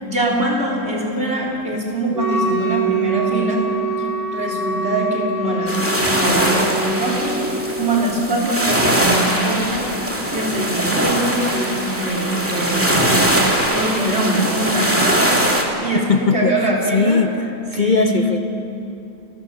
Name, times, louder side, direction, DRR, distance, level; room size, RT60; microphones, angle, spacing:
voice 1, 0.0-3.6 4.0-7.4 7.8-9.8 10.3-13.3 13.7-15.3 15.8-17.2 17.8-18.1, right 1 dB, 40° right, -3 dB, 3.9 m, -22 dB
Wind instrument woodwind instrument, 2.1-8.0, right 3 dB, 90° right, 2.8 m, -24 dB
sound 1, 5.7-15.6, right 1 dB, 10° right, 2.1 m, -21 dB
voice 2, 15.9-18.4, left 5 dB, 50° left, 7 dB, 0.5 m, -20 dB
29.5 x 14.0 x 7.0 m, 2.9 s
omnidirectional pair, 1.8 m